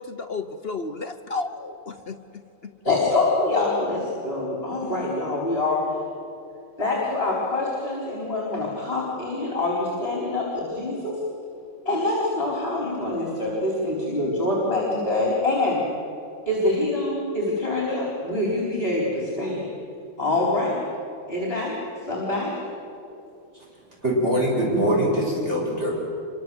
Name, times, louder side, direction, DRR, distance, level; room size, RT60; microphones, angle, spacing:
voice 1, 0.0-2.2, left 3 dB, 60° left, 7 dB, 0.6 m, -32 dB
voice 2, 2.8-5.8 6.8-11.2 11.9-15.8 16.5-19.7 20.2-20.8 21.3-22.6, left 2 dB, 25° left, -3 dB, 4.6 m, -25 dB
voice 3, 24.0-25.9, equal, 30° right, -3 dB, 7.0 m, -22 dB
26.0 x 24.0 x 7.9 m, 2.7 s
omnidirectional pair, 2.4 m